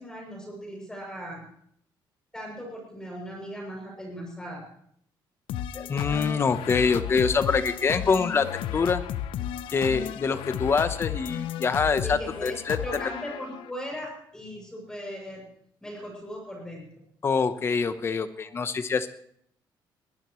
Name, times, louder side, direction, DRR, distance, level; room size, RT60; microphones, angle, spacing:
voice 1, 0.0-1.4 2.3-4.6 12.0-15.4 15.8-17.0 18.3-18.5, equal, 10° left, -1 dB, 7.2 m, -38 dB
sound 1, 5.5-13.7, left 10 dB, 85° left, 0.8 m, -34 dB
voice 2, 5.7-9.0 9.7-12.8 17.2-19.1, left 5 dB, 30° left, 11 dB, 1.0 m, -25 dB
21.5 x 17.5 x 3.2 m, 0.68 s
cardioid pair, 155°, 9 cm